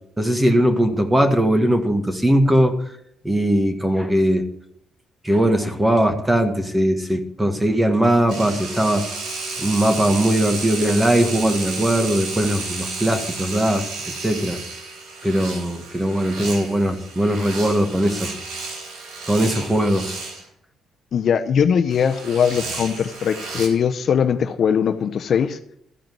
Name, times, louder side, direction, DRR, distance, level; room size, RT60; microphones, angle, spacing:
voice 1, 0.2-2.7 3.2-4.4 5.2-9.0 9.6-13.8 14.2-14.6 15.2-18.4 19.3-20.1, right 1 dB, 10° right, 6 dB, 1.7 m, -19 dB
sound 1, 8.3-20.4 21.9-23.7, right 3 dB, 80° right, 3.5 m, -32 dB
voice 2, 21.1-25.6, left 7 dB, 60° left, 8 dB, 0.8 m, -20 dB
14.0 x 5.0 x 9.3 m, 0.73 s
cardioid pair, 90°, 0 cm